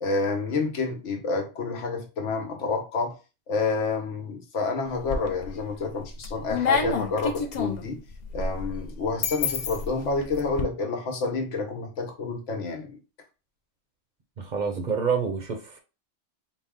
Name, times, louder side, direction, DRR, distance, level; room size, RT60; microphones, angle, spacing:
voice 1, 0.0-3.1 3.5-8.0 8.3-12.9, left 4 dB, 90° left, 1.2 m, -29 dB
sound 1, 4.9-5.6 6.0-10.6, left 5 dB, 50° left, 0.5 m, -29 dB
voice 2, 14.4-15.8, right 5 dB, 45° right, 0.7 m, -27 dB
4.1 x 2.1 x 3.5 m
omnidirectional pair, 1.2 m